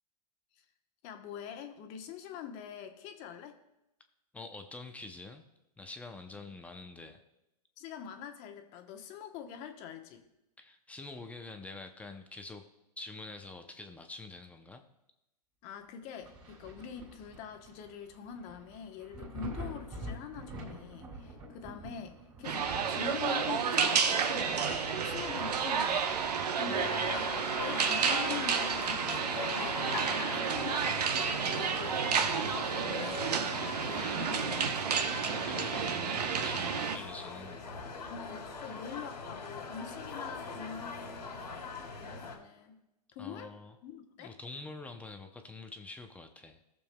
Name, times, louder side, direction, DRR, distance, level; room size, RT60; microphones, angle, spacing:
voice 1, 1.0-3.6 7.8-10.2 15.6-26.2 26.5-27.0 27.6-30.0 30.3-33.6 33.9-34.6 35.2-35.7 38.1-41.5 42.0-42.8 43.1-43.5 43.8-44.4, left 7 dB, 35° left, 6 dB, 1.0 m, -44 dB
voice 2, 4.3-5.4 5.8-7.2 10.6-12.6 13.0-14.8 26.7-27.3 34.0-34.7 35.3-37.6 43.2-43.7 44.2-46.6, left 3 dB, 5° left, 6 dB, 0.6 m, -46 dB
Thunder, 16.2-27.6 28.0-29.5 29.8-29.9 30.5-31.8 33.2-33.3, right 1 dB, 20° right, 3.1 m, -48 dB
sound 1, 22.4-37.0, right 6 dB, 75° right, 1.0 m, -31 dB
sound 2, 26.8-42.4, left 4 dB, 90° left, 2.3 m, -42 dB
18.0 x 6.8 x 2.3 m, 0.90 s
hypercardioid pair, 130°, 21 cm